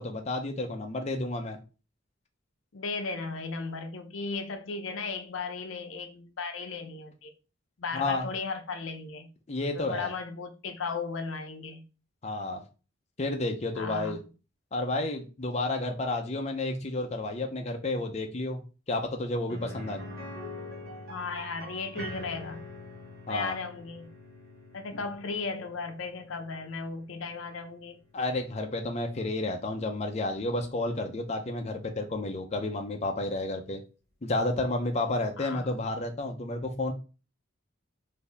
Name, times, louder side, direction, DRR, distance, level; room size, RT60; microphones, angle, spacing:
voice 1, 0.0-1.6 7.9-8.3 9.5-10.1 12.2-12.6 13.2-14.2 14.7-18.6 18.9-20.0 23.3-23.6 24.9-25.0 28.1-33.8 34.2-36.9, left 2 dB, 35° left, 0.5 m, -31 dB
voice 2, 2.7-7.3 7.8-9.3 9.7-11.8 13.7-14.2 21.1-22.6 23.3-24.1 24.7-28.0 35.4-35.7, left 4 dB, 75° left, 0.6 m, -36 dB
sound 1, 19.5-29.3 29.6-29.7 32.1-32.2, left 1 dB, 50° right, 1.3 m, -45 dB
4.4 x 2.7 x 3.3 m
head